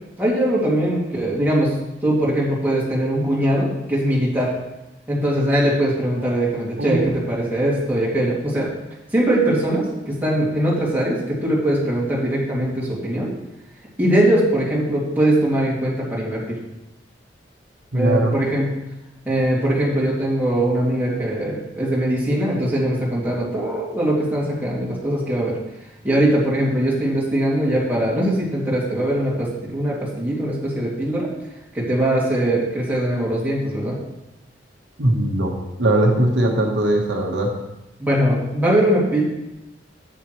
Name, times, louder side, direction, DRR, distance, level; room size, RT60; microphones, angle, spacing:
voice 1, 0.2-1.8 2.0-4.5 5.1-8.7 9.1-13.3 14.0-16.6 17.9-18.7 19.2-25.6 26.0-31.3 31.7-34.0 38.0-39.2, right 1 dB, 10° right, -6 dB, 2.6 m, -21 dB
voice 2, 17.9-18.3 35.0-37.5, right 1 dB, 80° right, 0 dB, 1.4 m, -20 dB
10.5 x 8.4 x 3.2 m, 0.94 s
head